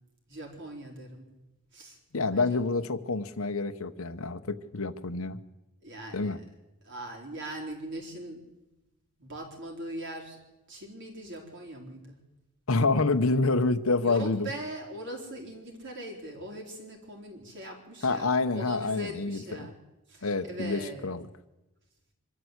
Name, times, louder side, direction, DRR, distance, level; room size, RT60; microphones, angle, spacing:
voice 1, 0.3-1.3 1.7-2.0 2.3-2.6 5.8-6.5 6.8-8.4 9.2-10.4 10.7-12.2 14.0-19.8 20.1-21.1, right 1 dB, 55° right, 0 dB, 4.2 m, -40 dB
voice 2, 2.1-5.4 6.1-6.4 12.7-14.5 18.0-19.4 20.2-21.2, left 3 dB, 70° left, 11 dB, 1.0 m, -27 dB
25.0 x 12.5 x 8.1 m, 1.0 s
head